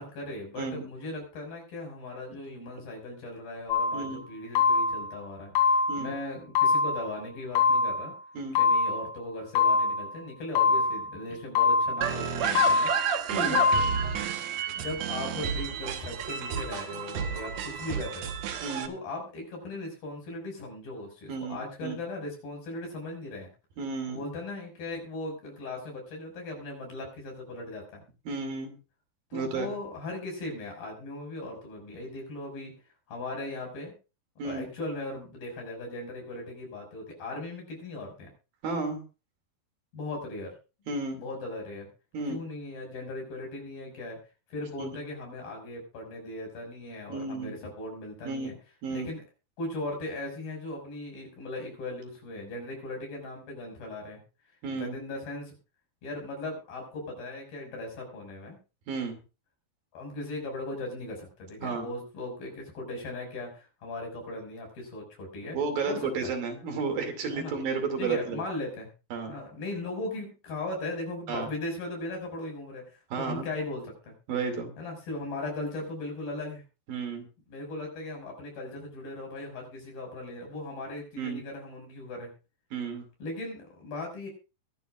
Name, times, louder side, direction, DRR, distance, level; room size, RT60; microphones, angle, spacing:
voice 1, 0.0-8.1 8.6-13.7 14.7-18.3 18.9-23.5 24.1-28.0 29.3-32.7 33.1-33.9 34.4-38.3 39.9-40.5 41.1-41.9 42.3-44.2 44.5-48.5 48.9-49.2 49.6-54.2 54.7-55.6 56.0-58.6 59.9-65.6 65.9-66.0 67.3-67.5 68.0-68.9 69.3-74.1 74.8-76.6 77.5-82.3 83.2-84.3, left 2 dB, 85° left, 1 dB, 7.6 m, -38 dB
voice 2, 0.6-0.9 3.9-4.3 5.9-6.1 8.3-8.6 12.4-12.5 13.3-13.6 18.6-18.9 21.3-22.0 23.8-24.3 28.3-28.8 29.3-29.7 34.4-34.7 38.6-39.0 40.9-41.2 42.1-42.4 44.8-45.0 47.1-47.6 48.2-48.5 48.8-49.1 54.6-55.0 58.9-59.2 61.6-61.9 65.5-68.4 69.1-69.4 71.3-71.5 73.1-73.5 74.3-74.7 76.9-77.3 81.2-81.4 82.7-83.1, right 4 dB, 75° right, 5 dB, 4.3 m, -32 dB
sound 1, 3.7-4.1 4.5-5.1 5.5-6.1 6.5-7.1 7.5-8.1 8.5-9.1 9.5-10.1 10.5-11.1 11.5-12.1 12.5-13.1 13.5-14.1, left 4 dB, 40° left, 3.3 m, -24 dB
sound 2, 12.0-18.9, right 7 dB, 60° right, 2.1 m, -31 dB
22.5 x 11.0 x 2.5 m, 0.32 s
omnidirectional pair, 4.1 m